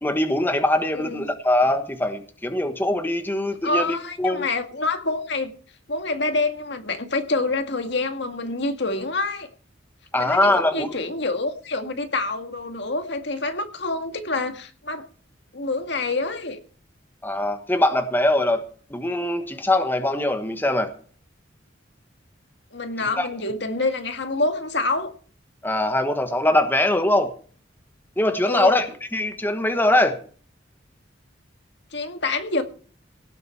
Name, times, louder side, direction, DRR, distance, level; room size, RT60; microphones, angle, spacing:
voice 1, 0.0-4.4 10.1-10.9 17.2-18.6 18.9-20.9 23.2-23.3 25.6-27.3 28.2-28.9 29.1-30.2, left 1 dB, 10° left, 7 dB, 1.3 m, -22 dB
voice 2, 0.9-1.3 3.6-5.5 5.9-9.5 10.2-15.0 15.5-16.6 22.7-25.1 28.5-28.8 31.9-32.6, left 2 dB, 65° left, 7 dB, 2.0 m, -27 dB
18.0 x 7.9 x 5.6 m, 0.43 s
head